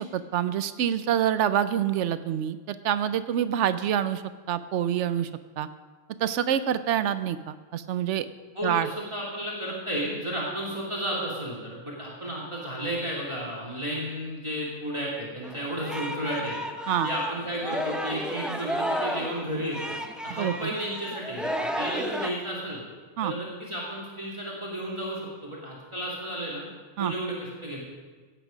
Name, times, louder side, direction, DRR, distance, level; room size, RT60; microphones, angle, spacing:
voice 1, 0.0-4.2 4.5-5.3 5.6-5.7 6.2-8.3 8.6-8.9 16.9-17.1 20.4-20.7 23.2-23.3 27.0-27.1, right 10 dB, 75° right, 13 dB, 0.9 m, -26 dB
voice 2, 8.5-16.6 17.0-19.9 20.2-22.8 23.2-26.7 27.0-27.8, equal, 25° right, -5 dB, 2.4 m, -33 dB
Singing, 15.4-22.3, equal, ahead, 0.6 m, -32 dB
17.0 x 8.1 x 5.1 m, 1.4 s
omnidirectional pair, 1.3 m